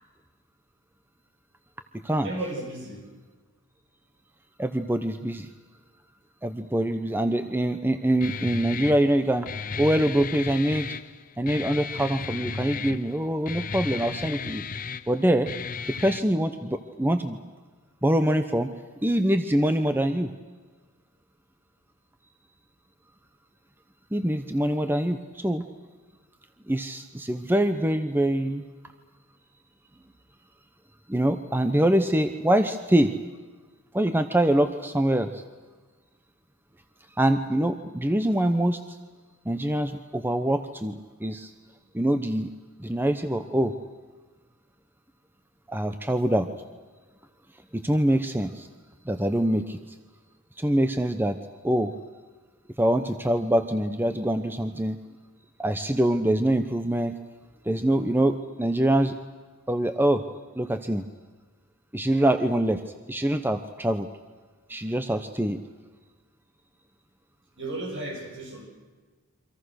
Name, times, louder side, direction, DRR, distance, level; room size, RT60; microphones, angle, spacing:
voice 1, 2.2-3.0 67.6-68.7, right 2 dB, 60° right, 1 dB, 7.8 m, -34 dB
voice 2, 4.6-5.5 6.4-9.5 9.8-11.0 11.4-14.6 15.1-15.5 15.9-17.4 18.0-18.7 19.0-20.3 24.1-25.6 26.7-28.6 31.1-33.1 33.9-35.4 37.2-39.0 39.5-41.5 41.9-42.5 42.8-43.7 45.7-46.5 47.7-48.7 49.0-49.8 50.6-51.4 51.6-51.9 52.8-55.0 55.6-57.1 57.6-59.2 59.7-60.2 60.6-61.0 61.9-62.8 63.1-64.1 64.7-65.6, right 1 dB, 10° right, 8 dB, 0.9 m, -24 dB
Guitar, 8.2-16.2, left 5 dB, 40° left, 0.8 m, -35 dB
28.5 x 25.0 x 6.5 m, 1.4 s
head